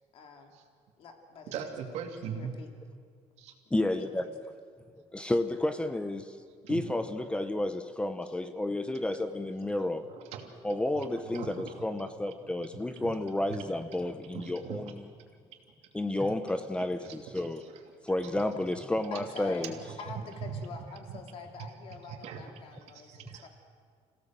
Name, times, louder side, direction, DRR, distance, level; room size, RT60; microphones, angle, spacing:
voice 1, 0.1-0.5 1.0-1.5 2.2-2.7 3.8-4.3 8.2-8.3 19.1-19.7 20.0-23.5, left 5 dB, 55° left, 3 dB, 2.9 m, -46 dB
voice 2, 1.5-2.5 3.4-3.5 6.6-6.8 9.6-11.8 12.2-12.8 13.5-13.6 14.3-14.8 16.8-17.7 20.1-20.2 20.4-20.6 21.1-21.2 22.1-22.5 23.1-23.5, right 7 dB, 70° right, 3 dB, 2.8 m, -41 dB
voice 3, 3.7-4.3 5.1-6.4 6.7-10.1 10.6-15.1 15.9-17.6 18.0-19.7, left 1 dB, 10° left, 10 dB, 0.8 m, -31 dB
27.5 x 17.0 x 7.5 m, 2.1 s
cardioid pair, 145°, 11 cm